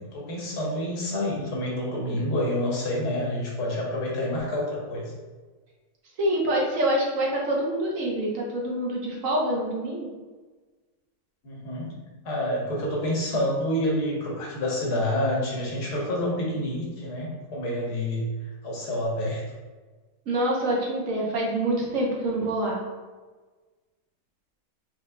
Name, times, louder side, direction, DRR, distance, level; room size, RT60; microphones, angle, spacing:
voice 1, 0.1-5.1 11.4-11.9 12.2-18.2 18.6-19.4, left 1 dB, 85° left, -3 dB, 1.7 m, -28 dB
voice 2, 6.2-10.1 20.3-22.8, right 1 dB, 60° right, -2 dB, 1.2 m, -26 dB
4.4 x 4.0 x 2.2 m, 1.3 s
omnidirectional pair, 1.7 m